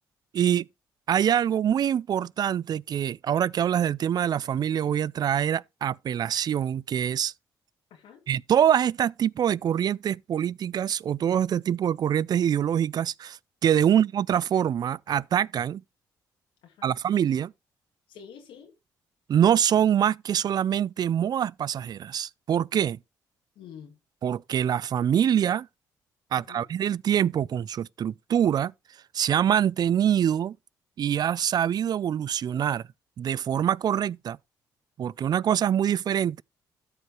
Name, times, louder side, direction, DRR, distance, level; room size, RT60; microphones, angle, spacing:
voice 1, 0.3-0.7 1.1-7.3 8.3-15.8 16.8-17.5 19.3-23.0 24.2-25.7 26.3-28.7 29.1-30.6 31.0-32.8 33.2-34.4 35.0-36.4, right 9 dB, 50° right, 0.3 m, -24 dB
voice 2, 7.9-8.2 13.9-14.0 16.6-17.0 18.1-18.7 23.6-23.9 26.3-26.7, left 8 dB, 75° left, 1.9 m, -48 dB
13.5 x 4.9 x 3.1 m
supercardioid pair, 60°, 9 cm